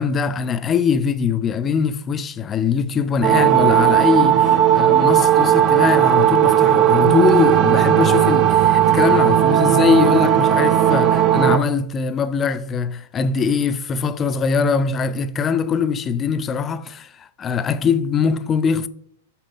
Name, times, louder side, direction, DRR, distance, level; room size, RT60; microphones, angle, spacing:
voice 1, 0.0-18.9, left 6 dB, 25° left, 0.5 m, -21 dB
sound 1, 3.2-11.6, right 10 dB, 35° right, 0.6 m, -15 dB
7.2 x 4.4 x 5.4 m
hypercardioid pair, 105°, 0 cm